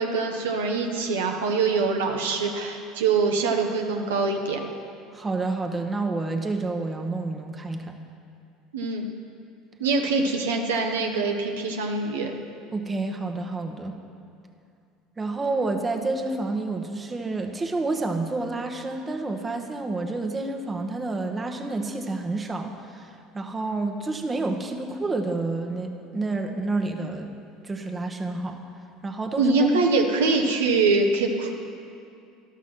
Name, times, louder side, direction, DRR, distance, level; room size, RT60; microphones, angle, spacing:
voice 1, 0.0-4.6 8.7-9.1 9.8-12.3 29.4-31.5, right 4 dB, 85° right, 2 dB, 0.8 m, -24 dB
voice 2, 5.1-8.0 12.7-14.0 15.2-27.3 27.6-28.6 29.0-29.7, right 3 dB, 25° right, 4 dB, 1.0 m, -29 dB
12.0 x 6.0 x 6.0 m, 2.4 s
hypercardioid pair, 80°, 0 cm